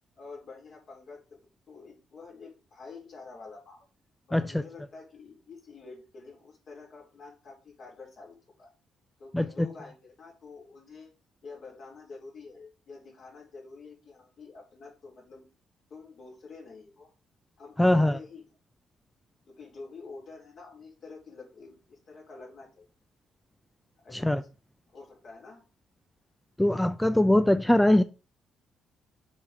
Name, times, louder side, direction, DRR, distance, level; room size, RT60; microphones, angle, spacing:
voice 1, 0.2-1.2 1.7-3.9 4.3-8.7 9.2-11.1 11.4-15.5 15.9-17.1 17.6-18.5 19.5-22.9 24.0-24.5 24.9-25.6, left 4 dB, 55° left, -1 dB, 3.8 m, -47 dB
voice 2, 4.3-4.6 9.3-9.7 17.8-18.2 24.1-24.4 26.6-28.0, left 1 dB, 5° left, 11 dB, 0.4 m, -22 dB
7.5 x 5.0 x 3.6 m, 0.32 s
cardioid pair, 90°, 0 cm